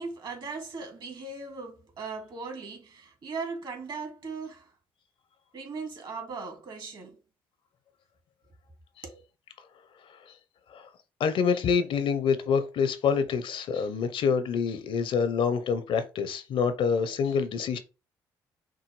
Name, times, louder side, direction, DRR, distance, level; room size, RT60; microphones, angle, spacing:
voice 1, 0.0-4.7 5.5-7.2 9.0-9.2, right 4 dB, 50° right, 1.9 m, -38 dB
voice 2, 11.2-17.8, left 6 dB, 60° left, 0.7 m, -26 dB
6.1 x 2.3 x 3.1 m
hypercardioid pair, 50°, 10 cm